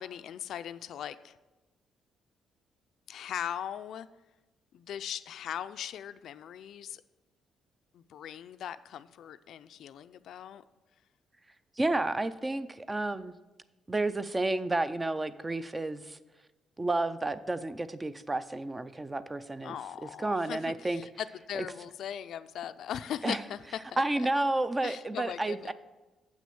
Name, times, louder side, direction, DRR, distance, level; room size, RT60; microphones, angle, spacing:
voice 1, 0.0-1.4 3.1-4.1 4.7-7.0 7.9-10.6 19.6-24.0 24.8-25.7, left 9 dB, 65° left, 13 dB, 0.3 m, -39 dB
voice 2, 11.8-13.3 13.9-16.2 16.8-19.8 20.2-21.0 21.5-21.6 23.2-23.4 24.0-25.7, right 2 dB, 15° right, 13 dB, 0.3 m, -31 dB
7.5 x 6.2 x 7.0 m, 1.1 s
cardioid pair, 130°, 0 cm